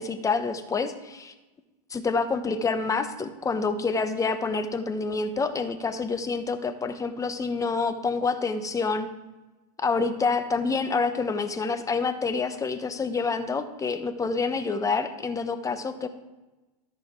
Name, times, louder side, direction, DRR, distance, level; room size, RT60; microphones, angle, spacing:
voice 1, 0.0-1.3 1.9-9.1 9.8-16.1, left 4 dB, 15° left, 9 dB, 0.8 m, -27 dB
13.5 x 5.6 x 4.4 m, 1.1 s
hypercardioid pair, 115°, 21 cm